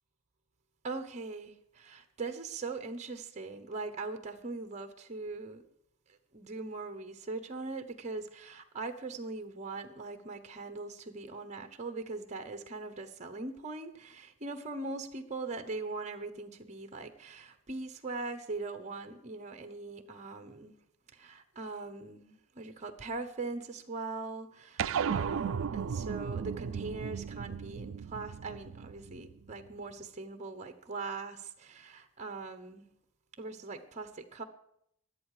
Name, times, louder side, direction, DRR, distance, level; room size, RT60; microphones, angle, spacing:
voice 1, 0.8-5.6 6.3-20.8 21.1-32.9 33.4-34.4, right 3 dB, 30° right, 7 dB, 0.9 m, -41 dB
sound 1, 24.8-29.5, right 7 dB, 60° right, 0.4 m, -35 dB
22.5 x 8.2 x 4.9 m, 0.75 s
head